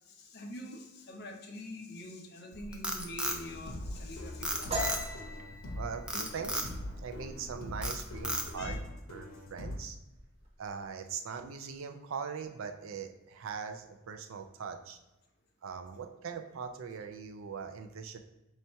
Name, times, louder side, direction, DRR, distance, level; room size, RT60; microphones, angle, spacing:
voice 1, 0.0-4.9 8.6-8.8, left 1 dB, 50° left, 1 dB, 0.7 m, -45 dB
Frog, 2.5-4.0 4.4-5.3 6.1-6.7 7.2-7.5 7.8-8.7, right 1 dB, 5° right, 0.3 m, -34 dB
sound 1, 3.2-9.8, left 1 dB, 85° left, 0.9 m, -42 dB
sound 2, 4.7-8.1 8.5-8.8 9.2-9.7 9.9-10.7, right 1 dB, 30° right, 0.8 m, -40 dB
voice 2, 5.8-6.7 7.0-8.8 9.1-10.0 10.6-15.0 15.6-18.2, right 6 dB, 70° right, 7 dB, 0.4 m, -41 dB
3.2 x 2.7 x 4.4 m, 0.98 s
head